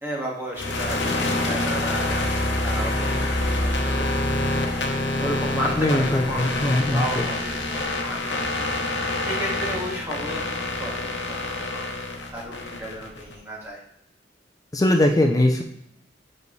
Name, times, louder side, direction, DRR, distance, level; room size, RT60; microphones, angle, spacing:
voice 1, 0.0-4.1 5.2-8.4 9.3-10.4 10.8-13.8, equal, 15° right, -5 dB, 1.9 m, -33 dB
sound 1, 0.5-13.3, left 2 dB, 70° left, 1.0 m, -26 dB
voice 2, 5.8-7.2 14.7-15.6, left 1 dB, 20° left, 3 dB, 0.5 m, -21 dB
6.7 x 5.3 x 3.2 m, 0.77 s
head